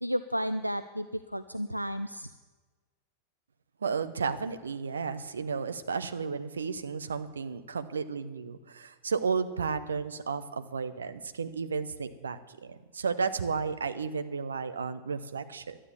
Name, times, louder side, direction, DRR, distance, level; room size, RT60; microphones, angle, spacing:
voice 1, 0.0-2.3, equal, 90° right, 12 dB, 0.3 m, -32 dB
voice 2, 3.8-15.8, right 5 dB, 70° right, 11 dB, 0.7 m, -33 dB
12.5 x 9.9 x 7.1 m, 1.3 s
figure-of-eight pair, 90°, 0 cm